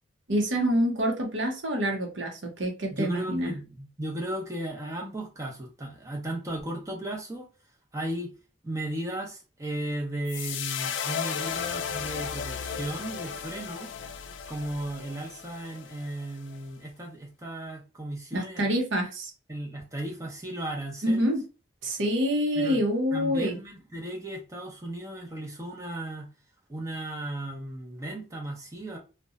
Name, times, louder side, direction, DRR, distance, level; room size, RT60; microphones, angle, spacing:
voice 1, 0.3-3.5 18.3-19.3 21.0-21.4 21.8-23.6, equal, 75° right, 0.7 m, -26 dB
voice 2, 2.9-7.5 7.9-8.3 8.6-13.9 14.5-18.7 19.5-21.3 22.6-22.8 23.1-26.3 26.7-29.0, right 1 dB, 15° right, 0.6 m, -35 dB
sound 1, 10.3-16.6, left 7 dB, 75° left, 0.3 m, -35 dB
2.8 x 2.1 x 2.4 m
head